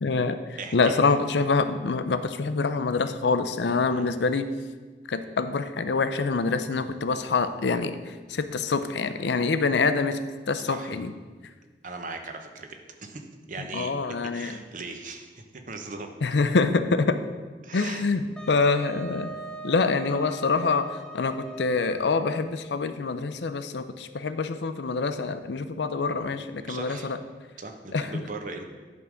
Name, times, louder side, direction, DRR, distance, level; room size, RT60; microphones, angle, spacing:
voice 1, 0.0-4.5 5.1-8.0 8.3-10.2 10.5-11.1 13.7-14.6 16.2-17.2 17.7-19.3 19.6-27.2 27.9-28.1, left 4 dB, 80° left, 10 dB, 0.5 m, -25 dB
voice 2, 0.6-1.0 3.9-4.0 10.7-11.0 11.8-13.2 13.5-13.9 14.3-16.1 17.6-18.1 26.7-27.1 27.6-28.6, right 3 dB, 45° right, 5 dB, 0.8 m, -38 dB
Wind instrument woodwind instrument, 18.4-22.7, right 3 dB, 5° left, 0.6 m, -41 dB
10.5 x 3.7 x 6.2 m, 1.4 s
head